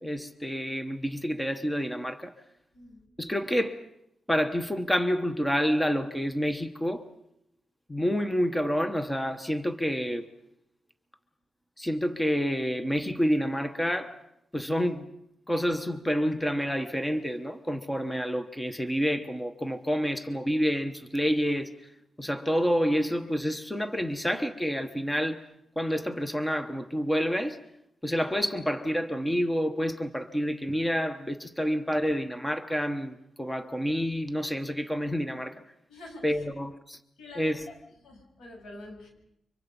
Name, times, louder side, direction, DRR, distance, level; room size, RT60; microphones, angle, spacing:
voice 1, 0.0-2.3 3.2-3.9 4.3-7.1 7.9-10.3 11.8-14.2 14.5-15.1 15.5-21.9 22.2-25.5 25.8-27.6 28.0-35.6 36.2-37.0 37.4-37.7, equal, 5° left, 1.1 m, -28 dB
voice 2, 2.7-3.0 35.9-36.4 37.2-37.7 38.0-39.1, left 2 dB, 85° left, 7.6 m, -46 dB
30.0 x 25.0 x 5.4 m
wide cardioid pair, 135°, 0 cm